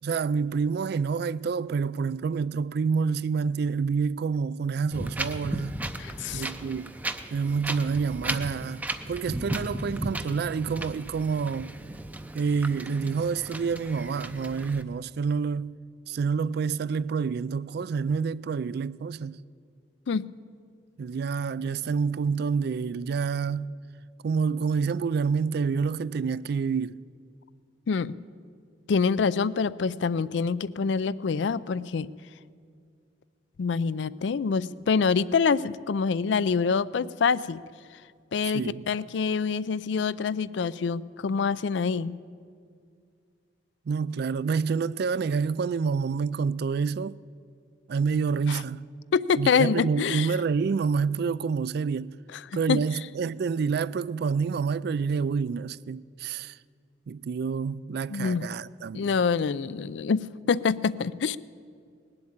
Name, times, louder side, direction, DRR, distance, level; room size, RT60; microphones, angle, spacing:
voice 1, 0.0-5.8 6.3-6.9 7.3-11.7 12.3-15.8 16.1-19.4 21.0-23.7 24.2-27.0 38.4-38.8 43.9-47.2 47.9-48.9 49.3-52.2 52.5-56.6 57.1-59.2, right 5 dB, 60° right, 0.3 m, -28 dB
Wind, 4.9-14.8, right 1 dB, 10° right, 0.5 m, -35 dB
voice 2, 6.0-6.4 20.1-20.2 27.9-28.1 28.9-32.1 33.6-37.6 38.3-42.1 48.5-48.6 49.1-50.3 52.7-52.8 58.1-58.4 58.9-60.2 60.5-61.4, left 5 dB, 70° left, 0.4 m, -26 dB
19.5 x 7.8 x 8.7 m
head